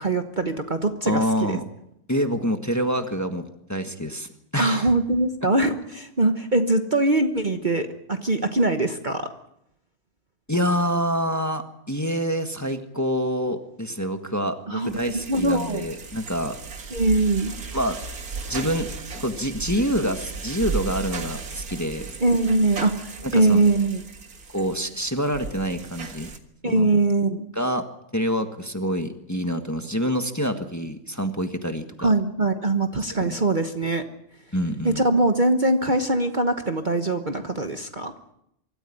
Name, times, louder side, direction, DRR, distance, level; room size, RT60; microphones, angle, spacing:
voice 1, 0.0-1.6 4.6-9.3 14.7-15.9 16.9-17.5 22.2-24.0 26.6-27.5 32.0-34.0 34.8-38.1, right 2 dB, 35° right, 7 dB, 1.3 m, -22 dB
voice 2, 1.0-1.6 2.1-3.4 3.7-4.9 10.5-16.6 17.7-18.0 18.5-18.9 19.1-22.1 23.2-23.6 24.5-26.4 26.6-26.9 27.5-27.8 28.1-32.1 33.2-33.4 34.5-35.0, equal, 10° left, 6 dB, 1.5 m, -26 dB
sound 1, 14.8-26.4, right 4 dB, 85° right, 2.2 m, -36 dB
25.0 x 14.0 x 9.9 m, 0.78 s
omnidirectional pair, 1.5 m